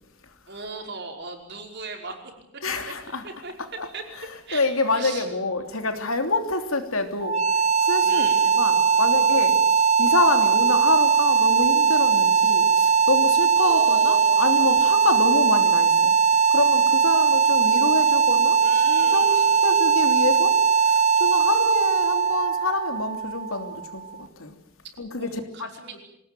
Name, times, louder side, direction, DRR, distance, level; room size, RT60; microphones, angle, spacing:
voice 1, 0.5-2.2 3.2-3.5 3.9-4.0 4.5-4.7 4.9-5.3 8.0-9.2 13.6-14.9 18.6-20.2 25.2-26.0, right 3 dB, 50° right, 5.2 m, -37 dB
voice 2, 2.6-3.2 3.8-3.9 4.2-4.3 4.5-16.2 16.5-24.5 25.0-25.7, left 3 dB, 70° left, 3.2 m, -27 dB
sound 1, 7.2-24.1, right 6 dB, 35° right, 1.2 m, -20 dB
26.0 x 18.5 x 9.3 m
head